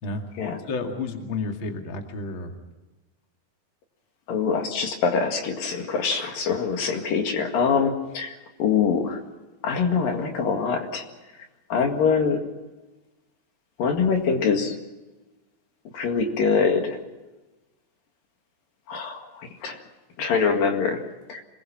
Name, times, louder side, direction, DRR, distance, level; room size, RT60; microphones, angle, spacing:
voice 1, 0.7-2.5, left 3 dB, 35° left, 3 dB, 2.6 m, -31 dB
voice 2, 4.3-8.3 8.6-9.2 9.6-11.0 11.7-12.4 13.8-14.7 15.9-17.0 18.9-19.8 20.2-21.0 21.3-21.4, left 5 dB, 65° left, 4 dB, 3.6 m, -24 dB
27.5 x 21.0 x 5.9 m, 1.1 s
omnidirectional pair, 4.5 m